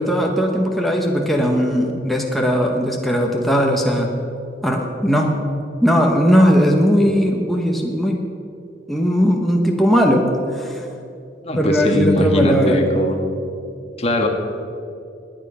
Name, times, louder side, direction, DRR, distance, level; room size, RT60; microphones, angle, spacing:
voice 1, 0.0-4.1 4.6-5.4 5.8-8.2 8.9-10.9 11.6-12.8, equal, ahead, 0 dB, 1.2 m, -18 dB
voice 2, 11.4-13.2 14.0-14.3, left 1 dB, 35° left, 3 dB, 1.5 m, -20 dB
21.0 x 9.1 x 5.6 m, 2.5 s
head